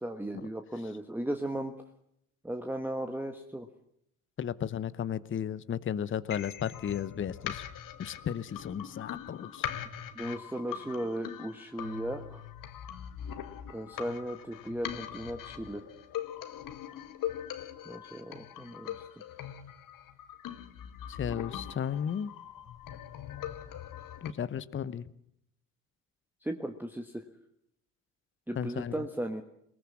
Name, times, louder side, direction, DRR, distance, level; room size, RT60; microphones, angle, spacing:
voice 1, 0.0-1.7 2.4-3.7 10.1-12.4 13.7-15.8 17.8-19.0 26.4-27.2 28.5-29.4, right 1 dB, 5° right, 5 dB, 1.4 m, -36 dB
voice 2, 4.4-7.6 8.0-9.7 21.1-22.3 24.2-25.1 28.6-29.0, left 8 dB, 30° left, 16 dB, 0.9 m, -34 dB
sound 1, 6.3-24.3, left 10 dB, 50° left, 1.8 m, -41 dB
20.0 x 18.5 x 7.5 m, 0.74 s
hypercardioid pair, 60°, 41 cm